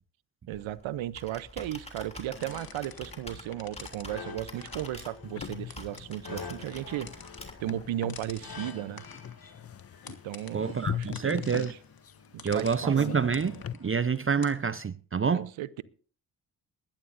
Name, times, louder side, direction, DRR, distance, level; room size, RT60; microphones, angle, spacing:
Computer keyboard, 0.5-7.8, left 1 dB, 15° left, 2.9 m, -47 dB
voice 1, 0.5-7.1 7.6-9.0 10.2-11.7 12.3-13.2 15.3-15.8, right 13 dB, 80° right, 0.8 m, -35 dB
sound 1, 2.3-14.7, left 5 dB, 50° left, 1.8 m, -47 dB
sound 2, 5.2-13.7, left 9 dB, 30° left, 0.5 m, -41 dB
voice 2, 10.5-11.7 12.4-15.5, right 6 dB, 30° right, 0.6 m, -27 dB
22.5 x 11.0 x 2.6 m
supercardioid pair, 45°, 47 cm